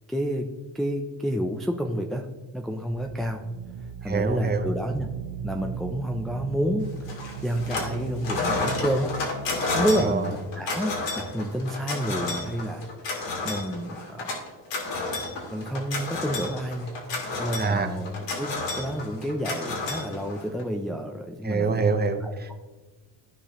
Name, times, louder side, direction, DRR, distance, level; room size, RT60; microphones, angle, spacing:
voice 1, 0.1-0.5 0.7-2.3 2.5-3.4 4.0-5.1 5.4-9.1 9.7-14.3 15.5-21.7 22.2-22.5, equal, ahead, 2 dB, 0.3 m, -30 dB
sound 1, 2.9-11.5, right 5 dB, 50° right, 1.0 m, -38 dB
voice 2, 4.1-4.7 10.0-10.3 17.6-17.9 21.4-22.5, right 4 dB, 20° right, 7 dB, 0.7 m, -25 dB
sound 2, 7.1-8.0 8.2-20.6, left 3 dB, 70° left, 2.3 m, -31 dB
14.5 x 4.9 x 2.9 m, 1.3 s
cardioid pair, 130°, 45 cm